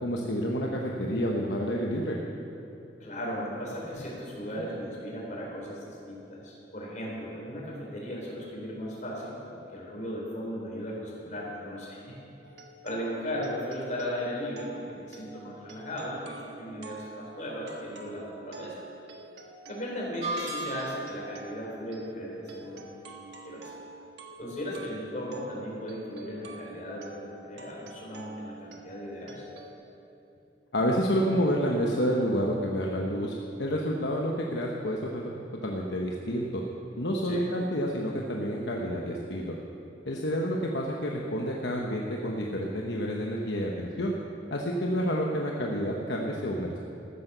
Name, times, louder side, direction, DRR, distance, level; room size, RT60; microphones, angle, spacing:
voice 1, 0.0-2.2 30.7-35.3 35.6-36.6 37.0-39.5 40.1-44.1 44.5-46.8, equal, 70° left, -1 dB, 1.0 m, -29 dB
voice 2, 3.0-12.1 12.8-18.8 19.7-22.8 23.4-23.8 24.4-29.5 37.2-37.4, equal, 45° left, -3 dB, 4.0 m, -36 dB
sound 1, 12.4-29.7, right 3 dB, 70° right, 1.4 m, -48 dB
sound 2, 20.2-21.2, right 2 dB, 40° right, 2.2 m, -34 dB
14.0 x 9.9 x 6.8 m, 2.9 s
head